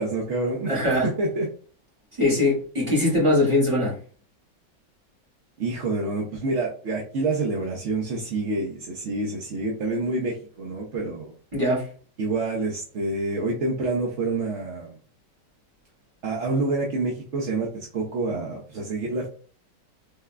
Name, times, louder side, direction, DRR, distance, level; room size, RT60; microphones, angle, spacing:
voice 1, 0.0-0.7 1.2-1.5 5.6-11.3 12.2-14.9 16.2-19.3, right 2 dB, 60° right, -2 dB, 0.8 m, -27 dB
voice 2, 0.7-1.1 2.2-3.9 11.5-11.9, left 1 dB, 15° right, -5 dB, 1.7 m, -21 dB
3.5 x 3.2 x 2.2 m, 0.41 s
omnidirectional pair, 1.9 m